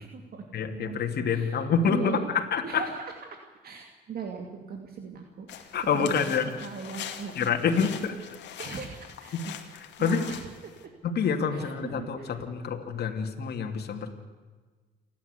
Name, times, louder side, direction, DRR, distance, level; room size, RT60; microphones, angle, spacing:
voice 1, 0.0-1.0 1.3-2.3 2.6-6.3 6.6-7.5 8.6-9.5 10.0-10.7 11.5-12.5, right 5 dB, 55° right, 3 dB, 2.7 m, -40 dB
voice 2, 0.5-2.8 5.7-6.5 7.4-8.2 10.0-10.2 11.0-14.2, left 6 dB, 65° left, 4 dB, 2.8 m, -27 dB
sound 1, 5.5-10.9, left 10 dB, 80° left, 2.4 m, -43 dB
29.0 x 12.0 x 8.3 m, 1.4 s
cardioid pair, 85°, 18 cm